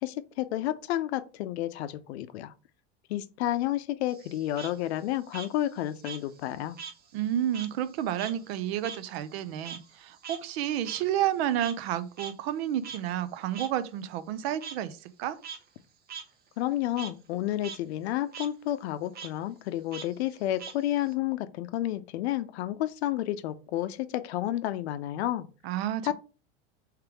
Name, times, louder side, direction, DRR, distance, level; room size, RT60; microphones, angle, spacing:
voice 1, 0.0-2.5 3.1-6.8 16.6-25.5 26.0-26.1, left 13 dB, 90° left, 0.6 m, -31 dB
Frog, 4.1-7.0 7.3-11.9 12.2-12.3 12.8-13.0 13.5-13.7 14.6-14.8 15.3-15.6 16.1-16.2 16.6-17.1 17.5-17.8 18.1-18.5 19.1-19.3 19.9-21.1, right 6 dB, 30° right, 0.7 m, -42 dB
voice 2, 7.1-15.4 25.6-26.1, right 11 dB, 75° right, 0.6 m, -30 dB
3.5 x 3.2 x 4.6 m
supercardioid pair, 115°, 31 cm